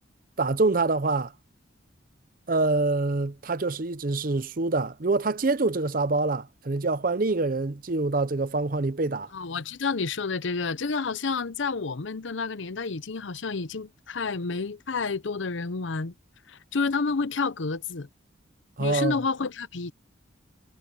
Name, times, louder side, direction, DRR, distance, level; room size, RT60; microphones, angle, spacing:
voice 1, 0.4-1.3 2.5-9.3 18.8-19.2, right 3 dB, 45° right, 0.7 m, -25 dB
voice 2, 9.3-16.1 16.5-18.1 18.8-19.9, left 4 dB, 75° left, 0.7 m, -30 dB
head